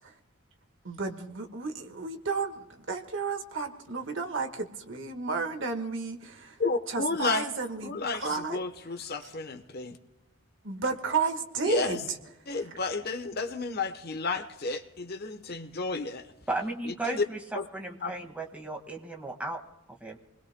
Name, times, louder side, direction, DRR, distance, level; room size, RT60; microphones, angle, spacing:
voice 1, 0.8-6.6 6.9-8.6 9.2-9.3 10.6-12.2 12.5-12.8, right 4 dB, 60° right, 6 dB, 1.5 m, -33 dB
voice 2, 6.6-7.4 7.8-8.2 8.5-10.0 11.7-12.0 12.5-16.3 17.1-17.2 17.5-17.6 18.0-18.1, left 3 dB, 45° left, 8 dB, 1.0 m, -31 dB
voice 3, 16.5-19.6 20.0-20.2, right 2 dB, 5° right, 1 dB, 1.8 m, -35 dB
28.5 x 21.0 x 2.2 m, 0.95 s
head